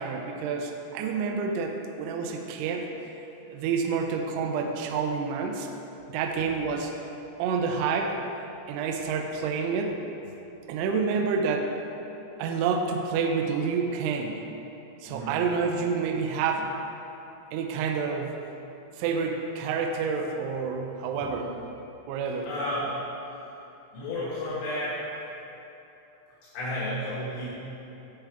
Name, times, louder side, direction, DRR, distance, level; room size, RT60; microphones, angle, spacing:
voice 1, 0.0-2.8 3.5-5.7 6.1-6.9 7.4-8.2 8.7-10.0 10.7-11.7 12.4-14.4 15.0-16.7 17.5-18.4 19.0-21.5 22.1-22.5, right 5 dB, 85° right, 3 dB, 2.7 m, -28 dB
voice 2, 22.5-23.0 23.9-25.0 26.5-27.5, left 1 dB, 75° left, -10 dB, 3.9 m, -31 dB
12.5 x 4.8 x 3.4 m, 2.9 s
omnidirectional pair, 5.9 m